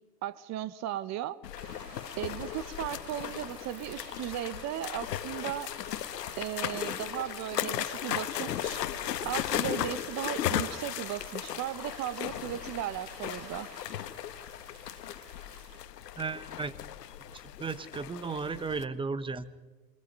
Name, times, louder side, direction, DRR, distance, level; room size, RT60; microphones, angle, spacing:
voice 1, 0.2-1.4 2.2-5.7 6.4-8.8 9.2-13.7, right 12 dB, 35° right, 16 dB, 1.1 m, -36 dB
sound 1, 1.4-18.8, left 11 dB, 80° left, 1.3 m, -36 dB
sound 2, 1.6-15.8, right 3 dB, 80° right, 7.8 m, -51 dB
voice 2, 16.2-16.7 17.3-19.5, right 4 dB, 10° right, 15 dB, 1.0 m, -35 dB
28.0 x 23.0 x 5.5 m, 1.3 s
hypercardioid pair, 110°, 48 cm